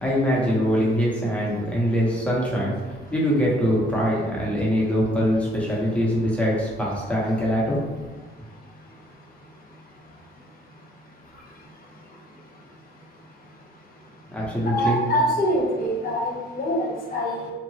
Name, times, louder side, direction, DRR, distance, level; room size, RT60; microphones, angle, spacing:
voice 1, 0.0-2.7 3.1-7.8 14.3-15.0, equal, 5° left, -5 dB, 1.0 m, -23 dB
voice 2, 14.7-17.5, equal, 50° left, -2 dB, 0.9 m, -24 dB
2.8 x 2.6 x 2.8 m, 1.3 s
cardioid pair, 90°, 20 cm